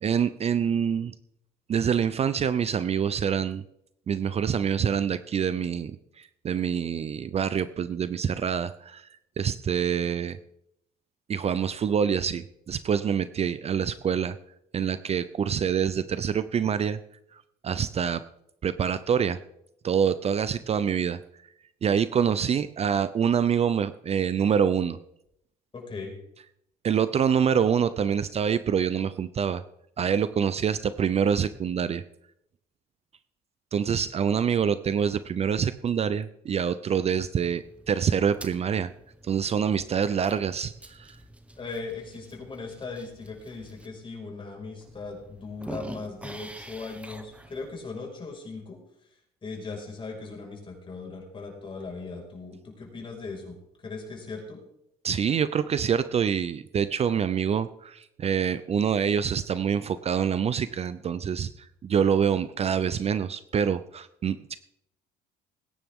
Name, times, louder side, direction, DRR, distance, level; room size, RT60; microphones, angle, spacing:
voice 1, 0.0-1.1 1.7-3.6 4.1-9.1 9.4-10.4 11.3-14.4 14.7-17.0 17.3-18.2 18.6-19.4 19.8-21.2 21.8-25.0 26.8-29.6 30.0-32.0 33.7-38.9 39.2-41.2 55.0-64.6, right 7 dB, 40° right, 14 dB, 0.6 m, -26 dB
voice 2, 25.7-26.1 39.7-39.8 40.1-40.2 41.6-48.8 49.4-53.6 53.8-54.6, left 4 dB, 30° left, 0 dB, 5.6 m, -38 dB
sound 1, 37.4-43.9 44.4-44.5 44.8-47.8, right 1 dB, 5° right, 1.5 m, -46 dB
20.0 x 10.5 x 3.7 m, 0.78 s
cardioid pair, 110°, 17 cm